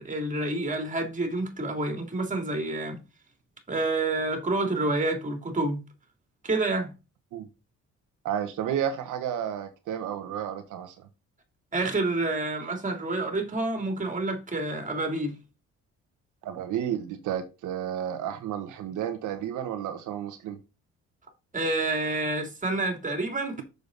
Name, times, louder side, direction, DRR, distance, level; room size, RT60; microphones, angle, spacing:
voice 1, 0.0-3.0 3.7-5.8 6.4-6.9 11.7-15.4 21.5-23.6, right 2 dB, 25° right, 2.8 m, -28 dB
voice 2, 8.2-11.1 16.4-20.6, right 9 dB, 85° right, 1.2 m, -32 dB
6.9 x 6.7 x 3.9 m
cardioid pair, 90°, 30 cm